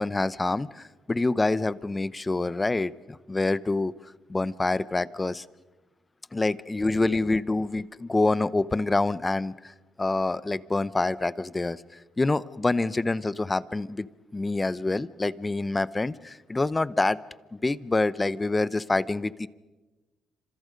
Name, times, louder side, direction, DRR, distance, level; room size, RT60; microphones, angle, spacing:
voice 1, 0.0-3.9 4.3-5.4 6.3-11.8 12.2-14.1 14.3-17.2 17.5-19.5, left 2 dB, 20° left, 17 dB, 0.7 m, -26 dB
28.5 x 26.5 x 5.2 m, 1.2 s
cardioid pair, 90°, 0 cm